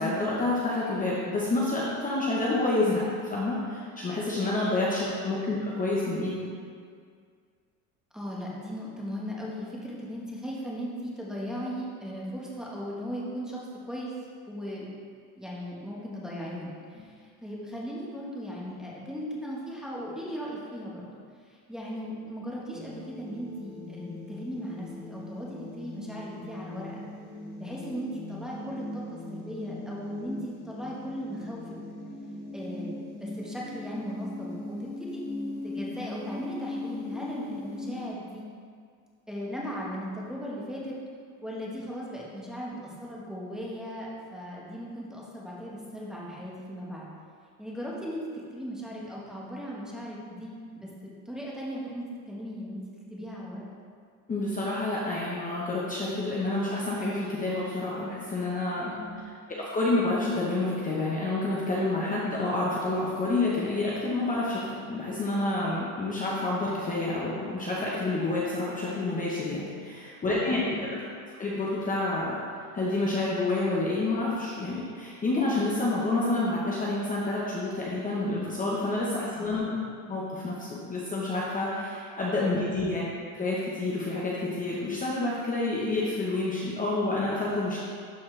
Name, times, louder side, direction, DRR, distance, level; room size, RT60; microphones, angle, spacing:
voice 1, 0.0-6.3 54.3-58.9 59.5-64.6 64.9-70.8 71.4-72.4 72.7-79.8 80.1-83.0 83.3-87.8, left 2 dB, 20° left, -6 dB, 1.0 m, -28 dB
voice 2, 8.1-14.1 14.5-14.9 15.4-27.0 27.6-31.6 32.5-35.2 35.6-38.4 39.3-41.0 41.4-47.1 47.6-48.2 48.5-50.9 51.2-52.8 53.1-53.6 58.9-59.3 70.2-70.9 79.2-79.6 82.5-82.8, equal, ahead, -5 dB, 1.2 m, -37 dB
sound 1, 22.7-38.1, left 2 dB, 85° left, 1.6 m, -39 dB
12.0 x 4.2 x 3.3 m, 2.1 s
cardioid pair, 130°, 43 cm